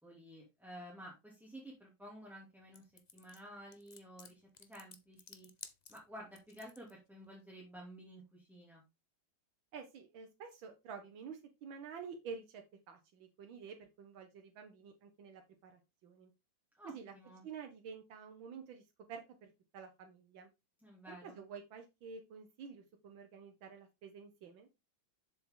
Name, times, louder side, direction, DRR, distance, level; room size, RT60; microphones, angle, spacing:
voice 1, 0.0-5.5 5.9-8.8 16.8-17.4 20.8-21.4, equal, ahead, -3 dB, 2.7 m, -52 dB
sound 1, 2.7-6.9, left 5 dB, 40° left, 0.6 m, -55 dB
voice 2, 9.7-16.3 16.8-17.1 17.4-18.8 19.1-20.5 21.1-24.7, right 6 dB, 90° right, 4 dB, 1.8 m, -50 dB
7.5 x 7.1 x 3.7 m, 0.24 s
omnidirectional pair, 2.1 m